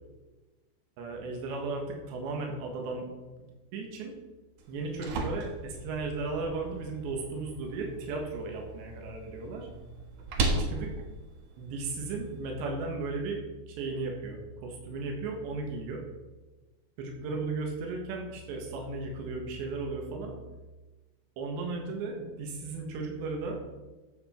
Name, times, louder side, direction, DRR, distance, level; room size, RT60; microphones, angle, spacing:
voice 1, 1.0-3.1 3.7-4.1 4.7-9.7 10.5-10.9 11.6-13.4 13.7-16.0 17.0-20.4 21.4-23.6, right 3 dB, 85° right, 1 dB, 3.9 m, -35 dB
sound 1, 4.6-12.5, right 2 dB, 65° right, 2.1 m, -37 dB
14.0 x 7.3 x 4.4 m, 1.2 s
omnidirectional pair, 4.9 m